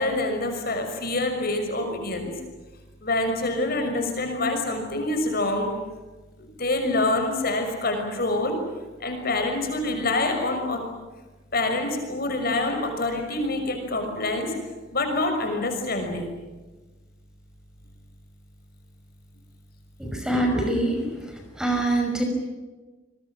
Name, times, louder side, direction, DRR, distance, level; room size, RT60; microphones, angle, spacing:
voice 1, 0.0-2.3 3.0-5.7 6.4-8.6 9.0-10.8 11.5-14.5 14.9-16.3, left 2 dB, 50° left, 4 dB, 6.2 m, -26 dB
voice 2, 20.0-21.0 21.6-22.2, right 1 dB, 5° right, 2 dB, 5.9 m, -24 dB
29.5 x 23.0 x 7.6 m, 1.2 s
head